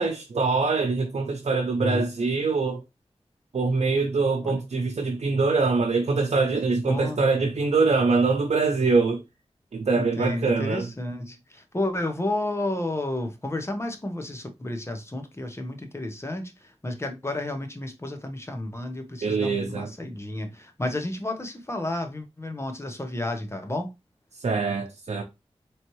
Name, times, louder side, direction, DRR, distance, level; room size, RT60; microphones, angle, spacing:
voice 1, 0.0-2.8 3.5-9.2 9.7-10.9 19.2-19.9 24.3-25.2, right 4 dB, 75° right, 0.7 m, -24 dB
voice 2, 1.8-2.1 4.4-4.6 6.9-7.2 9.9-23.9, left 1 dB, 25° left, 1.1 m, -31 dB
4.1 x 3.2 x 3.1 m
cardioid pair, 50°, 11 cm